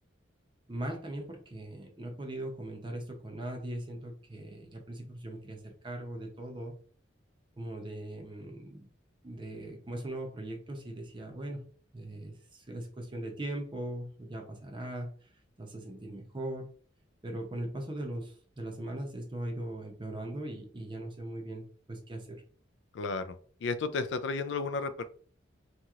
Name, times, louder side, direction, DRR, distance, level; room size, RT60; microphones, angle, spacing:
voice 1, 0.7-6.7 7.6-8.9 9.2-11.6 11.9-15.1 15.6-16.7 17.2-22.4, right 1 dB, 25° right, 2 dB, 0.6 m, -39 dB
voice 2, 22.9-23.3 23.6-25.0, left 4 dB, 70° left, 11 dB, 0.4 m, -32 dB
2.9 x 2.8 x 2.4 m, 0.44 s
head